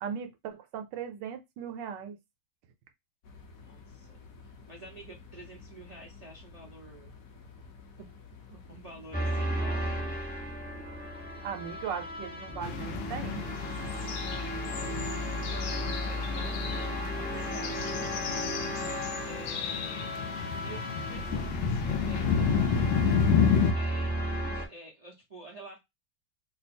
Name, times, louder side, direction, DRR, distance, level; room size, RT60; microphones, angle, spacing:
voice 1, 0.0-2.2 11.4-13.5, right 7 dB, 70° right, 1.3 m, -38 dB
sound 1, 3.2-20.5, left 5 dB, 55° left, 1.0 m, -51 dB
voice 2, 3.6-7.1 8.5-10.1 14.9-18.6 19.2-20.1 20.6-22.6 23.7-25.8, right 2 dB, 55° right, 0.4 m, -49 dB
sound 2, 9.1-24.7, equal, 15° left, 0.3 m, -34 dB
sound 3, 12.6-23.7, left 7 dB, 85° left, 1.3 m, -31 dB
3.3 x 2.0 x 4.2 m
omnidirectional pair, 2.1 m